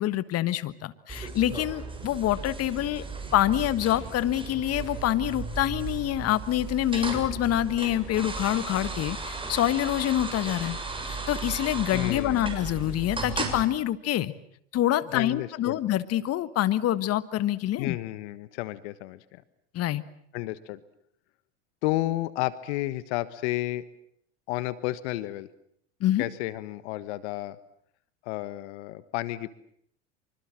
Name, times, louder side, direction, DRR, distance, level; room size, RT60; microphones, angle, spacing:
voice 1, 0.0-3.0 3.3-10.8 11.1-14.3 14.7-18.0 19.7-20.0 26.0-26.2, left 13 dB, 40° left, 15 dB, 1.5 m, -26 dB
sound 1, 1.1-13.6, right 3 dB, 15° right, 6.9 m, -35 dB
voice 2, 11.9-12.6 15.1-15.8 17.8-19.4 20.3-20.8 21.8-23.8 24.5-25.5 26.2-27.6 28.2-29.5, left 17 dB, 65° left, 15 dB, 1.5 m, -32 dB
25.5 x 25.0 x 7.6 m, 0.68 s
hypercardioid pair, 90°, 36 cm